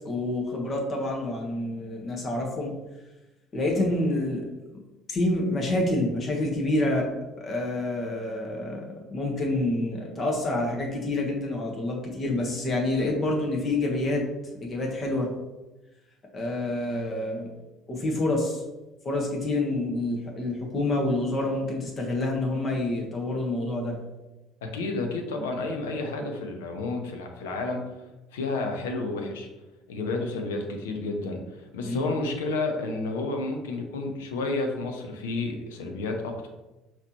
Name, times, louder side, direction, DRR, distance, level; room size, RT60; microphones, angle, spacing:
voice 1, 0.0-2.7 3.5-4.4 5.1-7.1 7.4-14.2 14.6-15.3 16.3-17.5 17.9-18.6 19.0-24.0 31.8-32.1, left 2 dB, 40° left, 0 dB, 1.2 m, -27 dB
voice 2, 24.6-28.0 28.3-29.5 29.9-36.5, left 3 dB, 75° left, 3 dB, 0.6 m, -31 dB
5.7 x 3.0 x 2.9 m, 1.0 s
figure-of-eight pair, 60°, 0 cm